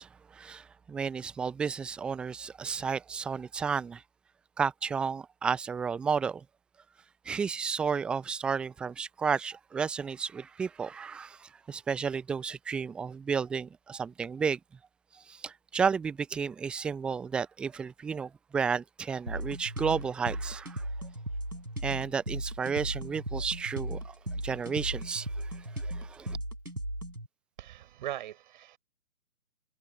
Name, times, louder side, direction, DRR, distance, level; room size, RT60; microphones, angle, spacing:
voice 1, 0.0-4.0 4.6-6.4 7.2-14.6 15.1-20.8 21.8-24.1 24.4-26.4, right 6 dB, ahead, 0.8 m, -32 dB
sound 1, 19.3-27.3, right 1 dB, 90° right, 6.8 m, -37 dB
voice 2, 27.6-28.8, right 12 dB, 35° right, 5.7 m, -40 dB
figure-of-eight pair, 135°, 43 cm